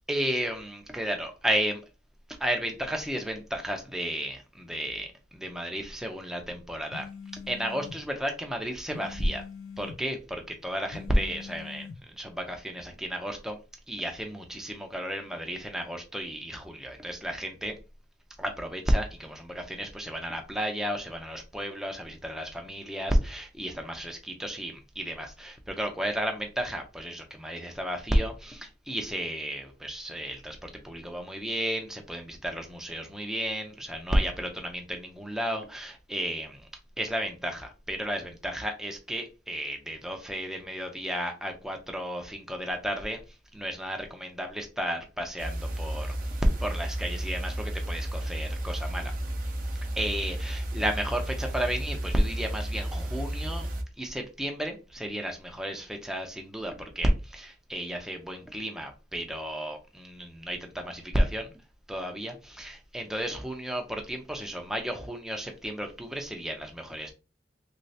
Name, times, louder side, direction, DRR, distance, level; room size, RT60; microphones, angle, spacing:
voice 1, 0.1-1.8 2.4-7.1 7.3-9.4 9.8-11.9 12.2-13.6 13.9-17.7 18.4-36.7 37.0-43.2 43.5-46.2 46.6-49.1 50.0-53.7 54.0-61.5 61.9-67.1, equal, 5° right, 0.5 m, -32 dB
sound 1, 6.9-8.0 8.9-10.0 10.9-12.0, left 5 dB, 90° left, 0.4 m, -43 dB
sound 2, 45.4-53.8, right 1 dB, 50° right, 0.6 m, -33 dB
3.2 x 3.1 x 2.7 m
head